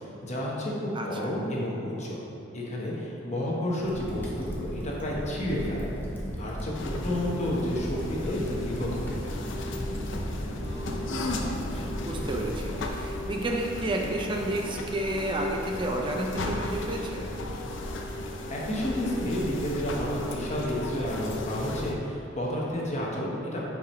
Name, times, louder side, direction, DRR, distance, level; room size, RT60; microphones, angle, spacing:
voice 1, 0.2-2.2 2.5-5.9 6.4-9.5 18.5-23.7, left 1 dB, 40° left, -4 dB, 1.2 m, -31 dB
Crackle, 3.8-12.9, equal, 10° left, 0.9 m, -36 dB
sound 1, 6.7-21.9, left 1 dB, 85° left, 0.6 m, -35 dB
voice 2, 10.6-11.1 11.7-17.3, right 1 dB, 25° right, 1 dB, 0.6 m, -31 dB
8.9 x 4.9 x 3.2 m, 2.8 s
head